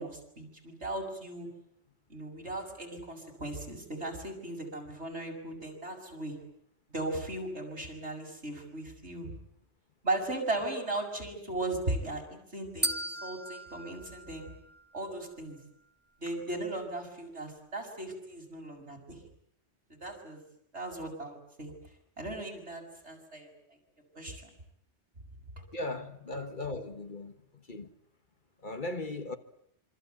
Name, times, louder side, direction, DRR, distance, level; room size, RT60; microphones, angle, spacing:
voice 1, 0.0-1.5 2.1-6.4 6.9-9.3 10.0-13.0 13.2-14.5 14.9-15.6 16.2-19.2 20.0-20.4 20.7-21.7 22.2-23.5 24.2-24.5 26.7-26.8, right 2 dB, 70° right, 6.8 m, -37 dB
sound 1, 12.8-15.1, right 2 dB, 10° right, 1.2 m, -37 dB
voice 2, 25.7-27.3 27.7-27.9 28.6-29.4, left 2 dB, 45° left, 1.5 m, -37 dB
26.5 x 25.5 x 8.1 m
omnidirectional pair, 1.2 m